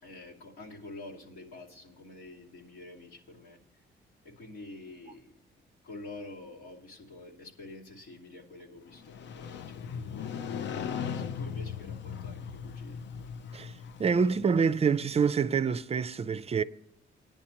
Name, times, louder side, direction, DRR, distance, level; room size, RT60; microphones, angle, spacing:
voice 1, 0.0-3.6 4.2-5.3 5.8-10.5 11.0-13.0, left 2 dB, 90° left, 2.6 m, -47 dB
Motorcycle, 8.9-14.9, left 7 dB, 65° left, 0.5 m, -38 dB
voice 2, 14.0-16.6, right 6 dB, 30° right, 0.4 m, -26 dB
19.0 x 10.5 x 2.9 m
cardioid pair, 90°, 20 cm